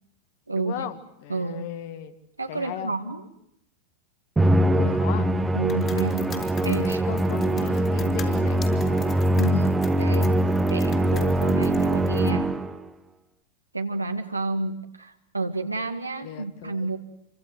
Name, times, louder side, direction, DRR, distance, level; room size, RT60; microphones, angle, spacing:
voice 1, 0.5-2.1 2.5-2.9 4.7-5.3 6.8-9.2 16.2-16.9, left 11 dB, 50° left, 10 dB, 2.1 m, -37 dB
voice 2, 1.3-1.7 2.4-3.3 5.5-7.0 9.4-10.3 10.7-12.5 13.7-17.0, right 3 dB, 85° right, 5 dB, 1.7 m, -30 dB
Musical instrument, 4.4-12.9, right 1 dB, 10° right, 1.6 m, -22 dB
sound 1, 5.7-12.3, left 8 dB, 30° left, 4.0 m, -44 dB
28.0 x 24.0 x 8.0 m, 0.79 s
figure-of-eight pair, 90°, 0 cm